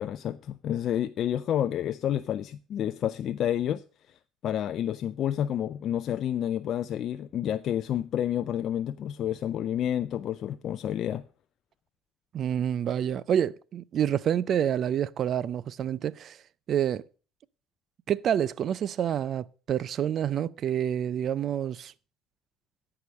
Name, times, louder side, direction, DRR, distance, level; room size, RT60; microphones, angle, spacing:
voice 1, 0.0-3.8 4.4-11.2, left 10 dB, 50° left, 0.4 m, -29 dB
voice 2, 12.3-16.4 16.7-17.0 18.1-21.9, right 9 dB, 50° right, 0.5 m, -28 dB
13.5 x 4.9 x 6.4 m
cardioid pair, 110°, 0 cm